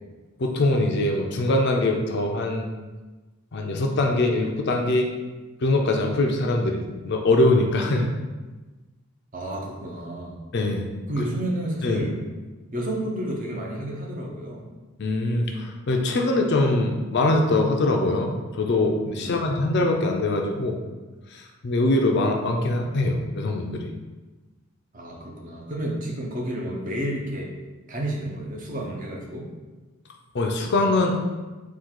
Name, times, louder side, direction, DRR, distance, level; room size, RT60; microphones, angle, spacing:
voice 1, 0.4-2.7 3.5-5.1 5.6-8.1 10.5-10.9 11.8-12.0 15.0-20.8 21.3-23.9 30.3-31.2, left 2 dB, 50° left, 2 dB, 0.4 m, -23 dB
voice 2, 9.3-10.4 11.1-12.3 12.7-14.7 19.2-19.7 24.9-27.5 27.9-29.5, right 1 dB, 35° right, -1 dB, 0.7 m, -31 dB
3.7 x 2.4 x 4.5 m, 1.2 s
head